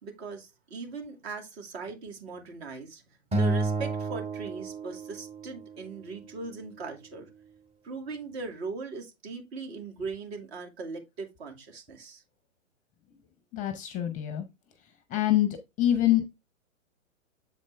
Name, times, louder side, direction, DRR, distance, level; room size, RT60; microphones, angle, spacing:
voice 1, 0.0-3.0 3.3-7.3 7.8-12.2, right 4 dB, 50° right, 2.4 m, -39 dB
Acoustic guitar, 3.3-5.7, right 3 dB, 15° right, 1.8 m, -30 dB
voice 2, 13.5-14.4 15.1-16.3, left 12 dB, 20° left, 0.6 m, -25 dB
7.5 x 4.3 x 3.3 m
hypercardioid pair, 120°, 40 cm